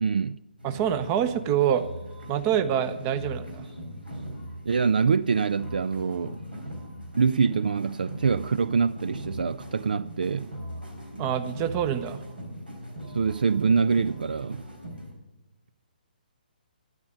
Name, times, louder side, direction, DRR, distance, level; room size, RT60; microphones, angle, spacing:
voice 1, 0.0-0.4 4.7-6.4 7.2-10.5 13.1-14.6, right 5 dB, 65° right, 0.4 m, -25 dB
voice 2, 0.6-1.8 2.3-3.7 11.2-12.2, right 9 dB, 25° right, 0.8 m, -26 dB
sound 1, 0.6-15.1, equal, 85° right, 3.8 m, -40 dB
12.0 x 10.5 x 5.2 m
figure-of-eight pair, 135°, 5 cm